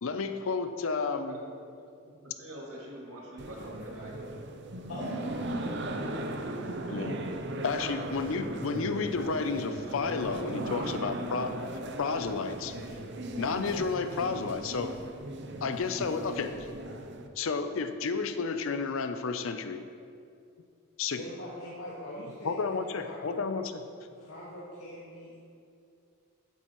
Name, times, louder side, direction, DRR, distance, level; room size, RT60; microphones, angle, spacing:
voice 1, 0.0-1.4 6.9-7.2 7.6-11.7 12.0-12.7 13.4-15.0 15.6-16.5 17.4-19.8 21.0-21.2 22.4-23.7, left 4 dB, 70° left, 9 dB, 0.5 m, -31 dB
voice 2, 2.2-4.1, right 1 dB, 85° right, -4 dB, 2.3 m, -44 dB
sound 1, 3.4-17.3, right 1 dB, 50° right, 0.6 m, -37 dB
voice 3, 4.9-6.1 21.2-23.5 24.2-25.4, equal, 90° left, -8 dB, 1.9 m, -42 dB
12.0 x 8.2 x 3.1 m, 2.5 s
head